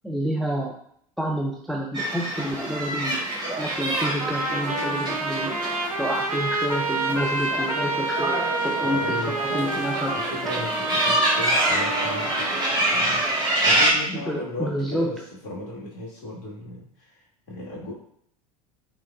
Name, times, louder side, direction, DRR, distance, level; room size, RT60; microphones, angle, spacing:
voice 1, 0.0-0.7 1.2-3.2 3.6-5.5 6.0-9.0 9.5-10.1 14.1-15.1, equal, ahead, -1 dB, 0.5 m, -28 dB
sound 1, 1.9-13.9, right 1 dB, 25° right, 1.4 m, -26 dB
Trumpet, 4.2-13.3, right 2 dB, 85° right, 0.5 m, -28 dB
voice 2, 8.8-9.8 10.1-17.9, left 1 dB, 50° left, -4 dB, 1.6 m, -36 dB
4.6 x 3.5 x 2.3 m, 0.66 s
figure-of-eight pair, 75°, 19 cm